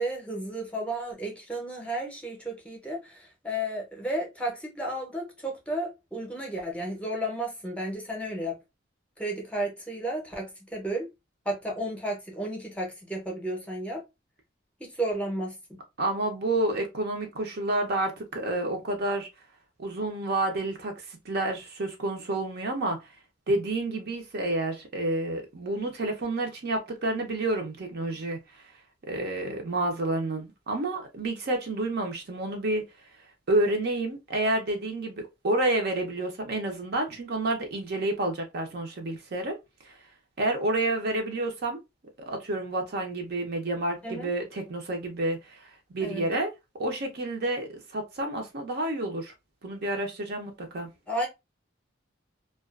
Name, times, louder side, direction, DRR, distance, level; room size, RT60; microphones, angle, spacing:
voice 1, 0.0-8.6 9.2-11.1 11.5-14.0 14.8-15.8 44.0-44.3 46.0-46.2 51.1-51.3, right 1 dB, 5° left, 0.7 m, -33 dB
voice 2, 16.0-19.3 19.8-23.0 23.5-28.4 29.1-32.8 33.5-39.6 39.8-39.9 40.4-41.8 42.3-45.6 45.9-46.5 46.8-49.3 49.6-50.9, right 2 dB, 55° right, 0.6 m, -29 dB
2.3 x 2.3 x 2.3 m
head